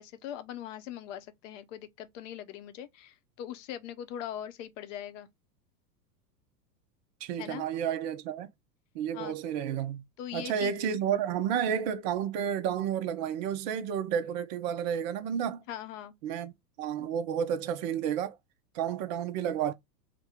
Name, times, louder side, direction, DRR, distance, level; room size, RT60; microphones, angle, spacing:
voice 1, 0.0-5.3 7.4-7.6 9.1-9.4 10.2-10.8 15.7-16.1, left 10 dB, 50° left, 0.7 m, -41 dB
voice 2, 7.2-8.5 8.9-10.0 10.3-15.6 16.2-16.5 16.8-18.4 18.7-19.7, right 8 dB, 30° right, 0.4 m, -31 dB
3.5 x 2.1 x 4.1 m
hypercardioid pair, 105°, 50 cm